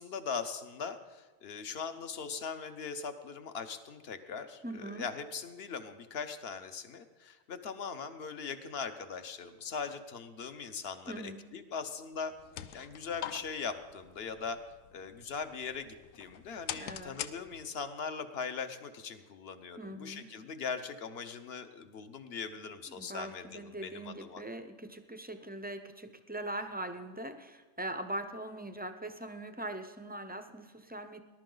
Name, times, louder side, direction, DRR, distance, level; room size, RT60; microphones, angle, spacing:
voice 1, 0.0-12.3 12.7-14.6 14.9-24.4, left 5 dB, 55° left, 9 dB, 1.1 m, -40 dB
voice 2, 4.6-5.1 11.1-11.5 16.7-17.2 19.8-20.3 22.9-31.2, right 1 dB, 10° right, 8 dB, 0.4 m, -41 dB
sound 1, 12.2-17.9, left 11 dB, 90° left, 1.0 m, -45 dB
19.5 x 11.5 x 3.9 m, 1.3 s
omnidirectional pair, 1.3 m